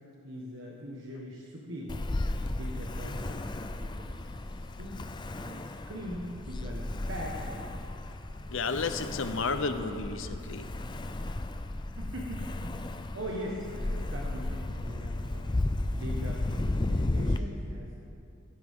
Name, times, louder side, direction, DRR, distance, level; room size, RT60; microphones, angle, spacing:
voice 1, 0.2-2.0 2.4-3.4 3.8-5.0 5.3-7.9 12.0-15.4 15.9-17.9, equal, 65° right, -3 dB, 1.5 m, -41 dB
Ocean, 1.9-17.4, left 2 dB, 20° left, 0.4 m, -34 dB
voice 2, 8.5-10.7, left 4 dB, 65° left, 9 dB, 0.8 m, -32 dB
16.0 x 16.0 x 3.7 m, 2.7 s
head